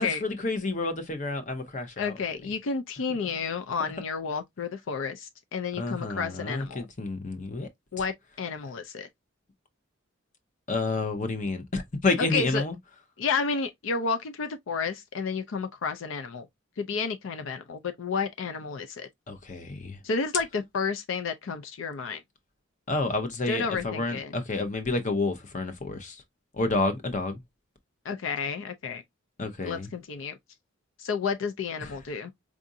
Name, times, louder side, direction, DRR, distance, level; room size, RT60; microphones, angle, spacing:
voice 1, 0.0-2.1 5.8-7.7 10.7-12.8 19.3-20.0 22.9-26.2 26.5-27.4 29.4-29.9 31.8-32.0, left 3 dB, 35° left, 0.7 m, -29 dB
voice 2, 2.0-6.9 7.9-9.1 12.3-12.6 13.2-16.5 16.8-19.1 20.0-22.2 23.5-24.3 28.0-29.0 29.6-30.4 31.0-32.3, left 5 dB, 70° left, 0.4 m, -31 dB
4.7 x 2.5 x 2.6 m
head